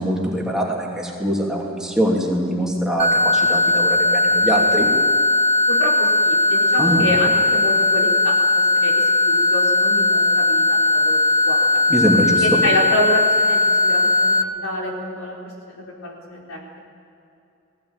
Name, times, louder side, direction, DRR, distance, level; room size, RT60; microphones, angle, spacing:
voice 1, 0.0-4.9 6.8-7.1 11.9-12.6, equal, 5° right, -3 dB, 2.8 m, -22 dB
sound 1, 3.0-14.4, left 2 dB, 30° right, 0.9 m, -18 dB
voice 2, 5.7-11.8 12.4-15.4 15.7-16.8, left 1 dB, 75° left, -1 dB, 4.3 m, -28 dB
19.0 x 17.0 x 9.1 m, 2.7 s
head